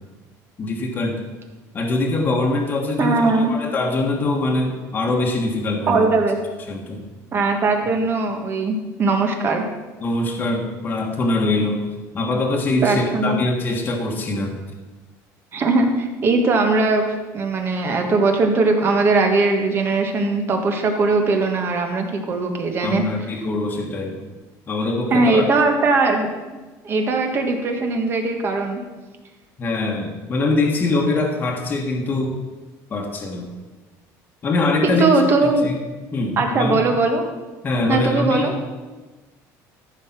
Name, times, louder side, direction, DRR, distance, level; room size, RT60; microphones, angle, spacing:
voice 1, 0.6-1.2 1.7-6.1 6.7-7.0 10.0-14.5 22.8-24.2 24.7-25.4 29.6-32.4 32.9-33.5 34.4-35.1 35.6-35.8 36.1-36.8 37.6-38.5, left 2 dB, 25° left, 0 dB, 1.5 m, -23 dB
voice 2, 3.0-3.5 5.9-6.4 7.3-9.6 12.8-13.4 15.5-23.0 25.1-26.3 26.8-28.8 34.8-35.7 36.4-37.3 37.9-38.5, right 3 dB, 35° right, 4 dB, 1.5 m, -20 dB
13.5 x 5.9 x 6.0 m, 1.2 s
cardioid pair, 150°, 7 cm